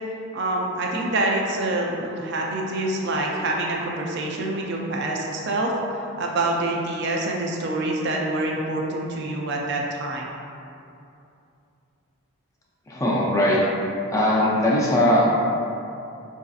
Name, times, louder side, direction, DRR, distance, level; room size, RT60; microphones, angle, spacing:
voice 1, 0.3-5.7 6.2-10.3, right 2 dB, 50° right, -1 dB, 0.4 m, -26 dB
voice 2, 12.9-13.6 14.1-15.4, left 1 dB, 15° left, -5 dB, 0.4 m, -20 dB
4.8 x 2.6 x 2.4 m, 2.6 s
head